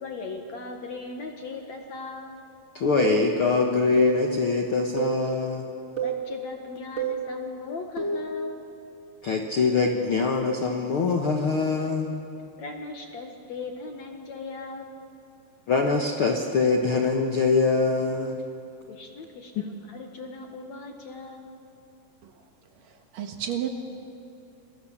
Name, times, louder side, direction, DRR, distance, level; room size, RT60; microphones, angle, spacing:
voice 1, 0.0-2.5 6.0-8.6 12.6-15.0 18.9-21.6, left 3 dB, 55° left, 3 dB, 2.3 m, -39 dB
voice 2, 2.7-5.7 9.2-12.1 15.7-18.4 19.6-19.7, left 4 dB, 80° left, 3 dB, 1.2 m, -23 dB
sound 1, 3.0-3.2 4.0-4.2 5.0-5.2 6.0-6.2 7.0-7.2 8.0-8.3, right 8 dB, 20° right, 2.1 m, -28 dB
voice 3, 22.8-23.7, right 10 dB, 65° right, 4 dB, 2.8 m, -32 dB
28.5 x 23.0 x 7.4 m, 2.7 s
omnidirectional pair, 4.7 m